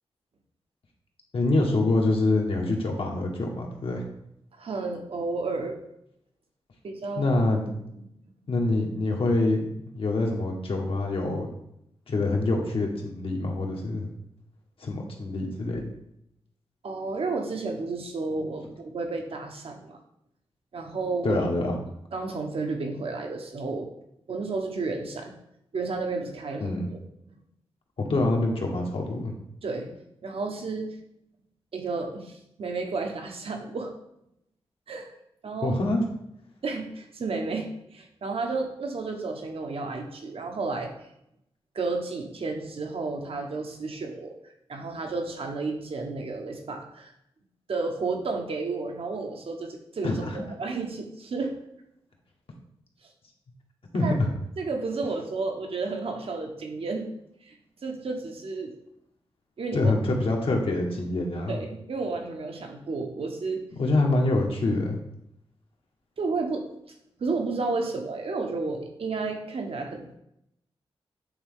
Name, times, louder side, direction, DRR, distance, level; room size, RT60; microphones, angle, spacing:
voice 1, 1.3-4.0 7.2-7.7 8.5-9.6 9.9-11.5 12.1-14.1 14.8-15.9 21.2-21.8 26.6-26.9 28.1-29.3 35.6-36.0 50.0-50.4 53.9-54.3 59.7-61.6 63.7-65.0, left 2 dB, 65° left, 1 dB, 1.4 m, -25 dB
voice 2, 4.6-5.8 6.8-7.3 16.8-20.0 20.7-21.4 22.1-23.9 24.3-25.3 25.7-27.0 27.3-27.4 29.6-29.9 30.2-31.0 31.7-33.9 34.9-35.1 35.4-35.8 36.6-40.9 41.7-44.3 44.7-47.1 47.7-51.5 54.0-54.2 54.6-57.1 57.4-57.5 57.8-58.7 59.6-59.9 61.5-63.6 66.2-66.6 67.2-70.1, right 3 dB, 70° right, 3 dB, 1.1 m, -32 dB
8.5 x 3.7 x 3.6 m, 0.78 s
cardioid pair, 75°, 10 cm